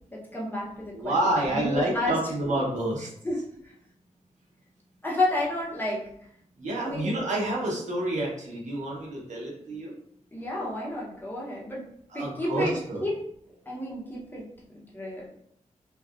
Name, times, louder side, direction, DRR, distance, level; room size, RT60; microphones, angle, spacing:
voice 1, 0.1-2.2 2.5-2.6 3.2-3.7 5.0-6.0 6.8-7.2 10.3-11.8 12.1-12.8 13.0-13.2 13.7-15.3, left 1 dB, 15° left, -5 dB, 0.9 m, -31 dB
voice 2, 0.9-3.1 6.6-9.9 12.1-13.0, right 1 dB, 65° right, -4 dB, 1.0 m, -28 dB
3.3 x 2.3 x 2.4 m, 0.68 s
cardioid pair, 90°, 13 cm